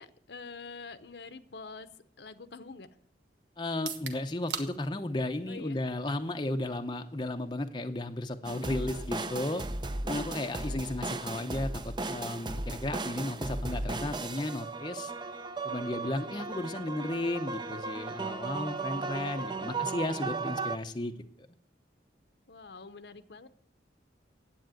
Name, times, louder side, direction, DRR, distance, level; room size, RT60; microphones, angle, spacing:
voice 1, 0.0-1.9 2.2-2.9 5.5-5.8 8.7-9.5 10.4-10.9 15.8-16.7 18.9-19.9 22.5-23.5, left 4 dB, 65° left, 12 dB, 0.8 m, -48 dB
voice 2, 3.6-9.6 10.0-15.1 15.6-21.1, left 1 dB, 25° left, 6 dB, 0.7 m, -34 dB
sound 1, 3.7-17.6, right 6 dB, 65° right, 1.4 m, -50 dB
sound 2, 8.4-20.8, right 3 dB, 25° right, 0.6 m, -36 dB
10.5 x 8.6 x 9.1 m, 0.69 s
head